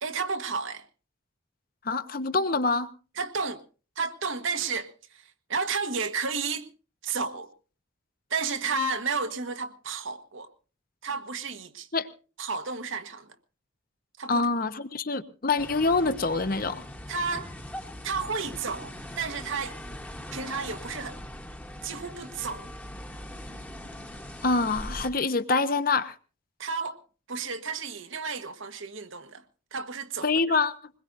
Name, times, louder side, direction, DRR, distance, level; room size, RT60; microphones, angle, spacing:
voice 1, 0.0-0.8 3.2-3.6 4.0-6.7 7.0-7.5 8.3-10.5 11.0-11.9 12.4-13.3 14.2-14.5 17.1-17.5 18.0-19.8 20.3-21.2 21.8-22.7 26.6-27.0 27.3-29.4 29.7-30.3, right 4 dB, 75° right, 1.4 m, -32 dB
voice 2, 1.8-2.9 11.9-12.1 14.3-16.8 24.4-26.1 30.2-30.7, left 3 dB, 45° left, 0.9 m, -25 dB
sound 1, 15.6-25.1, left 1 dB, 10° left, 1.2 m, -41 dB
22.0 x 21.0 x 2.6 m
head